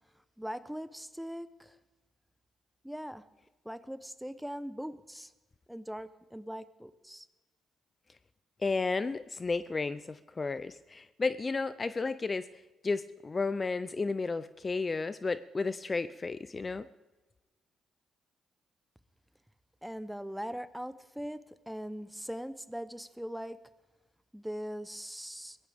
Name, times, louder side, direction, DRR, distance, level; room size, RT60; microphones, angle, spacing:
voice 1, 0.4-1.7 2.8-3.2 3.6-5.3 5.7-7.3 19.8-21.4 21.7-23.6 24.3-25.6, equal, ahead, 14 dB, 0.8 m, -40 dB
voice 2, 8.6-12.5 12.8-16.9, left 4 dB, 30° left, 14 dB, 0.5 m, -33 dB
22.5 x 17.0 x 3.5 m, 1.2 s
cardioid pair, 90°, 0 cm